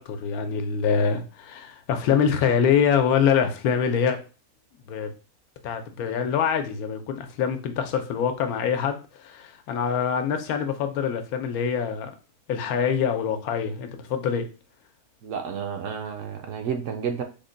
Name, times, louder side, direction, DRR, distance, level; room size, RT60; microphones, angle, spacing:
voice 1, 0.0-4.2 4.9-5.1 5.6-12.1 12.5-14.5, left 7 dB, 85° left, 7 dB, 1.1 m, -24 dB
voice 2, 15.2-17.2, right 7 dB, 70° right, 5 dB, 0.9 m, -31 dB
3.6 x 2.2 x 3.8 m, 0.34 s
omnidirectional pair, 1.6 m